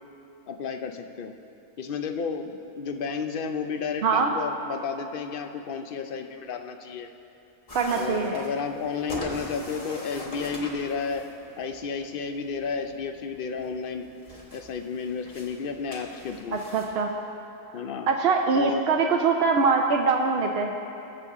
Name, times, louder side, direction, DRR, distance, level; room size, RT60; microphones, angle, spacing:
voice 1, 0.5-1.3 1.8-7.1 7.9-11.3 11.6-14.1 14.5-16.6 17.7-18.1 18.5-18.9, left 5 dB, 65° left, 7 dB, 0.5 m, -32 dB
voice 2, 4.0-4.3 7.7-8.3 16.5-17.1 18.1-20.7, right 4 dB, 60° right, 2 dB, 0.7 m, -23 dB
sound 1, 7.7-16.9, left 1 dB, 25° left, 1.3 m, -42 dB
20.0 x 7.0 x 3.6 m, 2.8 s
omnidirectional pair, 1.5 m